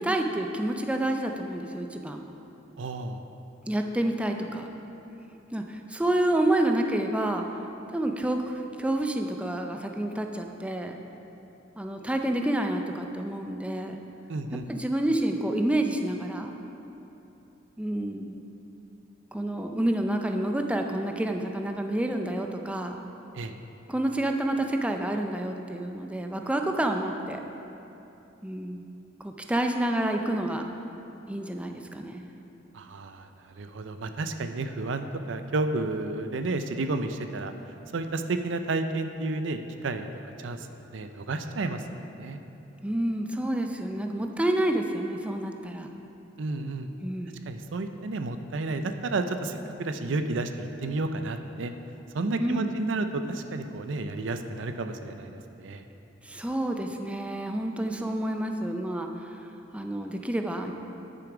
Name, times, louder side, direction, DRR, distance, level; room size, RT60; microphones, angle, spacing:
voice 1, 0.0-2.2 3.7-4.7 5.5-7.5 7.9-11.0 11.8-14.0 14.5-16.5 17.8-18.4 19.3-23.0 23.9-27.4 28.4-28.9 29.2-30.7 31.3-32.3 42.8-45.9 47.0-47.4 52.4-52.8 56.2-59.5 59.7-60.7, right 1 dB, 5° right, 4 dB, 0.4 m, -29 dB
voice 2, 2.8-3.2 14.3-14.6 23.3-23.5 32.7-33.3 33.6-37.5 37.9-40.1 40.4-40.6 40.9-42.4 46.4-46.9 47.5-51.7 52.1-55.8, right 2 dB, 70° right, 8 dB, 0.5 m, -31 dB
10.0 x 6.9 x 4.9 m, 2.9 s
head